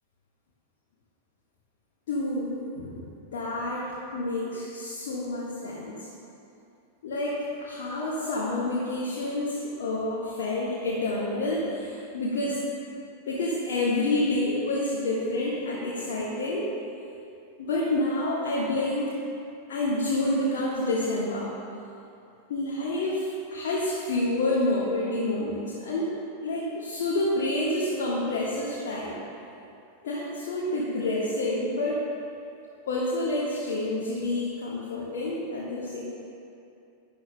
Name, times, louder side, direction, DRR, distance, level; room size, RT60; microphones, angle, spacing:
voice 1, 2.1-6.1 7.0-12.6 13.3-16.7 17.6-19.1 19.7-21.5 22.5-26.1 26.4-29.2 30.0-32.1 32.9-36.0, left 2 dB, 55° left, -6 dB, 1.4 m, -28 dB
12.0 x 10.5 x 2.2 m, 2.6 s
figure-of-eight pair, 90°, 0 cm